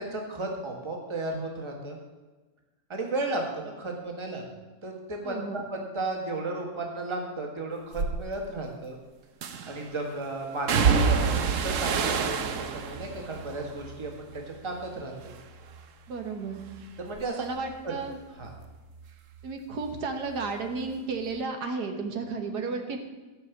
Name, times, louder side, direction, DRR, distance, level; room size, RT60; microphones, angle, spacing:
voice 1, 0.0-2.0 2.9-4.4 4.8-9.0 9.7-15.3 17.0-17.4 17.8-18.0 18.4-18.5, right 2 dB, 20° right, 1 dB, 1.6 m, -34 dB
voice 2, 5.2-5.6 16.1-16.6 17.4-18.2 19.4-23.0, right 4 dB, 75° right, 5 dB, 1.8 m, -33 dB
sound 1, 7.9-8.2 9.4-9.9 10.7-14.9 15.2-15.9 16.2-19.5 19.8-20.9 21.2-21.3, right 5 dB, 60° right, 1.0 m, -29 dB
12.5 x 5.5 x 7.2 m, 1.2 s
omnidirectional pair, 1.8 m